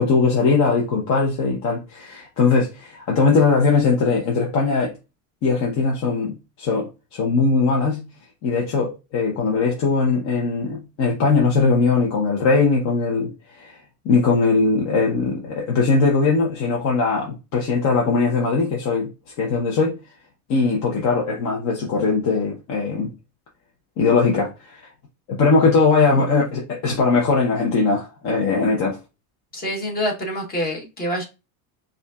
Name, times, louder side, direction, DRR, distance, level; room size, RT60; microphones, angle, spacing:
voice 1, 0.0-4.9 5.4-8.1 8.4-13.8 14.0-19.1 19.4-20.0 20.5-23.1 24.0-24.8 25.4-29.0, left 4 dB, 40° left, 0.9 m, -20 dB
voice 2, 29.5-31.2, equal, 20° left, 1.1 m, -26 dB
4.9 x 2.5 x 2.4 m
supercardioid pair, 135°, 44 cm